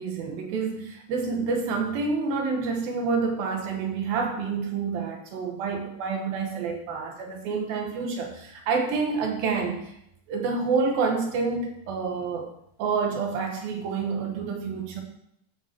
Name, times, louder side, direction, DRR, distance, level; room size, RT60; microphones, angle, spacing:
voice 1, 0.0-10.0 10.3-12.5 12.8-15.0, right 4 dB, 80° right, 2 dB, 3.2 m, -28 dB
9.1 x 5.2 x 7.5 m, 0.76 s
omnidirectional pair, 4.1 m